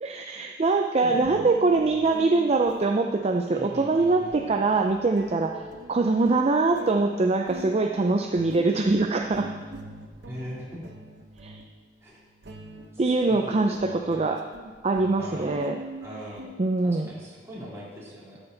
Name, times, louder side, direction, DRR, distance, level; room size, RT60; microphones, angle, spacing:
voice 1, 0.0-5.6 5.9-9.5 11.4-11.6 13.0-14.4 14.8-15.8 16.6-17.1, right 3 dB, 35° right, 4 dB, 0.5 m, -23 dB
sound 1, 0.6-0.7 1.2-17.1, right 1 dB, 70° right, 0.9 m, -44 dB
voice 2, 1.0-1.4 3.5-4.4 10.3-10.8 12.0-12.2 13.3-14.3 15.2-15.6 16.0-16.5 16.8-18.4, equal, 15° right, -7 dB, 3.2 m, -40 dB
13.0 x 7.9 x 3.9 m, 1.4 s
head